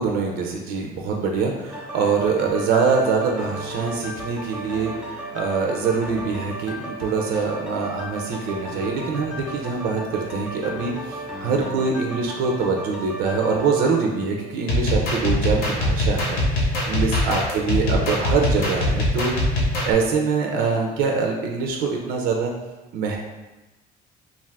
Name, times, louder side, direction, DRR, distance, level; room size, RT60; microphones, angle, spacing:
voice 1, 0.0-19.5 19.9-22.5 22.9-23.2, right 5 dB, 80° right, 1 dB, 0.4 m, -24 dB
sound 1, 1.7-15.4 15.9-16.0, equal, 5° right, 0.6 m, -35 dB
sound 2, 14.7-19.9, left 1 dB, 75° left, 0.8 m, -22 dB
2.5 x 2.4 x 3.3 m, 1.1 s
cardioid pair, 150°, 16 cm